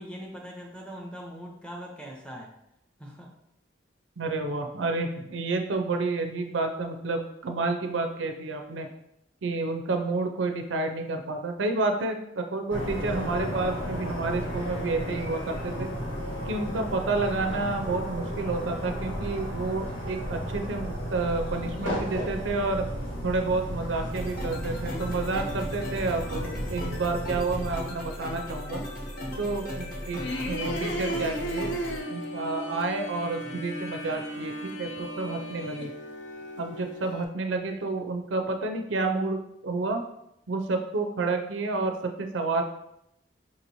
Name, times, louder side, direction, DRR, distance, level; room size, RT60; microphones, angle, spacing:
voice 1, 0.0-2.5 3.0-3.3 30.3-30.5 33.4-33.7, equal, 5° left, 0 dB, 0.5 m, -42 dB
voice 2, 4.2-8.9 9.4-15.9 16.5-22.9 23.2-28.8 29.4-30.2 30.5-31.7 32.1-35.9 36.6-40.0 40.5-42.6, right 3 dB, 85° right, 5 dB, 0.5 m, -30 dB
sound 1, 12.7-27.8, equal, 85° left, 1.3 m, -34 dB
sound 2, 24.1-32.0, left 1 dB, 50° left, 1.0 m, -36 dB
sound 3, 30.1-37.2, equal, 70° left, 0.5 m, -35 dB
4.8 x 2.9 x 2.6 m, 0.79 s
head